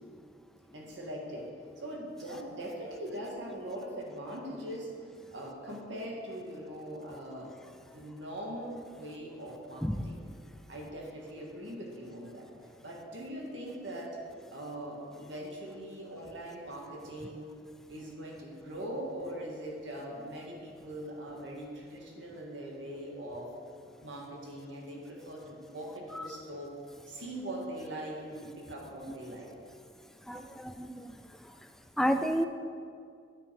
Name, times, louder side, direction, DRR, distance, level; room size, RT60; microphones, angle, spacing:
voice 1, 0.7-4.9 5.3-7.5 7.9-10.2 10.7-12.5 12.8-14.2 14.5-17.5 17.9-23.5 24.0-26.7 27.1-29.5, right 1 dB, 90° right, -1 dB, 2.1 m, -41 dB
voice 2, 30.3-30.9 32.0-32.5, equal, ahead, 8 dB, 0.3 m, -29 dB
9.8 x 8.7 x 4.8 m, 2.3 s
head